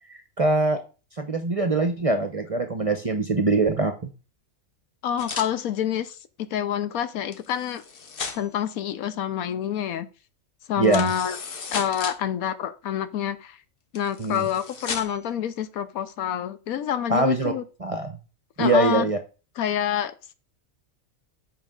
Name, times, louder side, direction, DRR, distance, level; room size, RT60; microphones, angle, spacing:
voice 1, 0.1-0.8 1.2-4.1 10.8-11.1 14.2-14.5 17.1-17.5 17.8-18.1 18.6-19.2, right 2 dB, 40° right, 7 dB, 0.5 m, -23 dB
voice 2, 5.0-7.8 8.3-10.1 10.7-11.4 11.7-13.6 13.9-17.6 18.6-19.1 19.6-20.3, left 9 dB, 90° left, 13 dB, 1.2 m, -27 dB
sound 1, 5.2-5.5 7.3-8.6 10.8-12.2 13.9-15.3, left 5 dB, 45° left, 1.0 m, -35 dB
7.6 x 5.1 x 3.7 m, 0.33 s
omnidirectional pair, 1.5 m